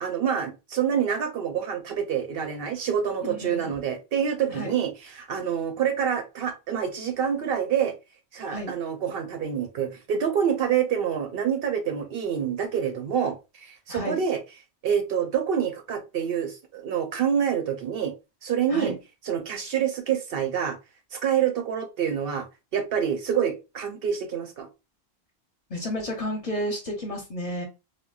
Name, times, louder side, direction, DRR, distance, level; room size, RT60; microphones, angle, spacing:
voice 1, 0.0-4.9 5.1-7.9 8.3-13.4 13.6-14.4 14.8-18.1 18.4-18.9 19.3-20.8 21.1-22.5 22.7-24.7, right 8 dB, 65° right, 6 dB, 0.8 m, -27 dB
voice 2, 3.2-3.7 4.5-4.8 8.5-8.8 13.9-14.2 18.7-19.0 25.7-27.6, equal, 40° left, 1 dB, 0.7 m, -32 dB
3.6 x 2.1 x 2.3 m, 0.27 s
omnidirectional pair, 1.1 m